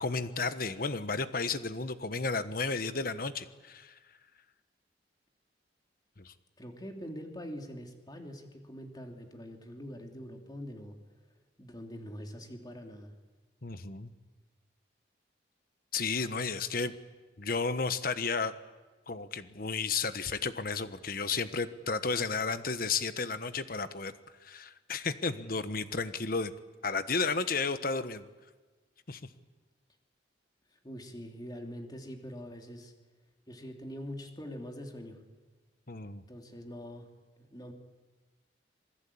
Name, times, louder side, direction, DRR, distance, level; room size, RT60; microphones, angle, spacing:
voice 1, 0.0-3.9 6.2-6.3 13.6-14.1 15.9-16.9 17.4-18.5 19.1-24.1 24.4-26.5 26.8-28.2 29.1-29.2 35.9-36.2, left 4 dB, 50° left, 11 dB, 1.3 m, -33 dB
voice 2, 6.6-11.0 11.6-13.1 30.7-32.9 33.5-35.2 36.3-37.1 37.4-37.7, equal, 20° left, 3 dB, 3.1 m, -44 dB
27.0 x 20.0 x 8.7 m, 1.3 s
head